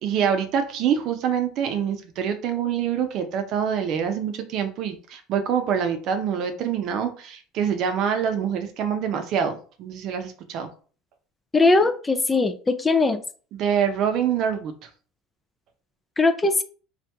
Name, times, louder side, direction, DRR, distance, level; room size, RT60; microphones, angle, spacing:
voice 1, 0.0-10.7 13.5-14.9, right 8 dB, 55° right, 7 dB, 0.6 m, -25 dB
voice 2, 11.5-13.2 16.2-16.6, left 3 dB, 15° left, 10 dB, 0.3 m, -20 dB
2.9 x 2.4 x 3.4 m, 0.40 s
supercardioid pair, 120°, 0 cm